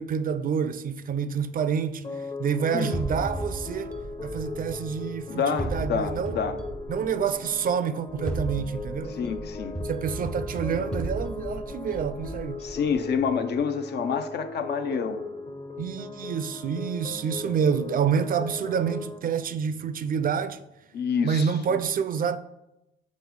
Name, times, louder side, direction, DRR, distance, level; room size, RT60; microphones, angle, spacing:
voice 1, 0.0-2.1 2.4-3.9 4.2-6.4 6.9-9.2 9.8-12.7 15.8-20.6 21.2-22.4, right 7 dB, 45° right, 0.4 m, -28 dB
sound 1, 2.0-19.2, left 3 dB, 30° left, 0.9 m, -38 dB
sound 2, 2.9-5.1 5.6-7.4 8.1-13.2, right 1 dB, 5° left, 0.6 m, -35 dB
voice 2, 5.3-6.6 9.1-9.8 12.6-15.2 20.9-21.8, left 6 dB, 60° left, 0.6 m, -28 dB
5.3 x 4.0 x 4.7 m
cardioid pair, 90°, 20 cm